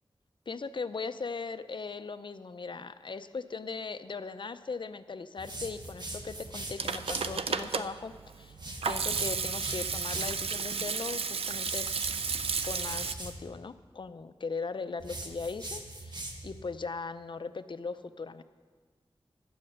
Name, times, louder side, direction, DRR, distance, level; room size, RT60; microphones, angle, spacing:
voice 1, 0.5-8.6 8.9-11.9 12.6-18.4, left 4 dB, 55° left, 11 dB, 0.5 m, -39 dB
sound 1, 5.4-7.4 8.5-10.4 11.5-13.4 15.0-16.6, right 1 dB, 50° right, 1.4 m, -41 dB
Hands / Sink (filling or washing), 6.5-13.1, right 5 dB, 85° right, 0.5 m, -33 dB
12.0 x 8.6 x 6.4 m, 1.5 s
wide cardioid pair, 70°, 10 cm